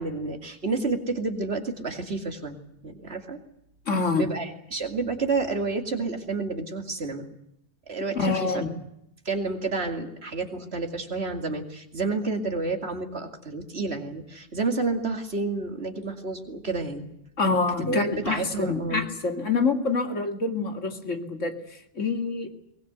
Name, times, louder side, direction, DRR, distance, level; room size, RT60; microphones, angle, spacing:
voice 1, 0.0-2.6 2.8-3.4 4.2-7.3 7.9-8.6 9.2-17.1 17.9-19.1, right 3 dB, 55° right, 5 dB, 2.7 m, -30 dB
voice 2, 3.9-4.3 8.2-8.7 17.4-21.6 22.0-22.5, left 4 dB, 85° left, 5 dB, 2.6 m, -26 dB
23.0 x 20.5 x 8.1 m, 0.78 s
omnidirectional pair, 1.3 m